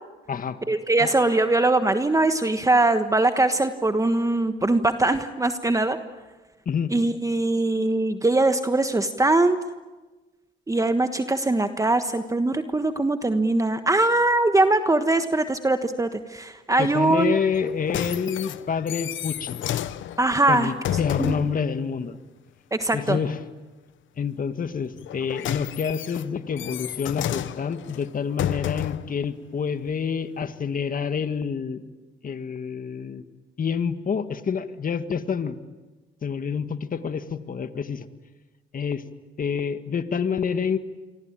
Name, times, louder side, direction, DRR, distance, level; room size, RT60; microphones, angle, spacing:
voice 1, 0.7-6.0 6.9-9.6 10.7-17.3 20.2-20.7 21.2-21.3 22.7-23.2, right 2 dB, 15° right, 8 dB, 1.3 m, -22 dB
voice 2, 16.8-19.6 20.5-22.2 22.9-23.4 24.2-31.8 32.2-33.2 33.6-35.6 36.2-38.1 38.7-39.0 39.4-40.8, left 6 dB, 45° left, 10 dB, 1.8 m, -28 dB
sound 1, 17.5-21.6 25.0-29.1 29.9-30.0, left 11 dB, 75° left, 1.0 m, -31 dB
27.5 x 23.5 x 9.0 m, 1.2 s
cardioid pair, 90°, 20 cm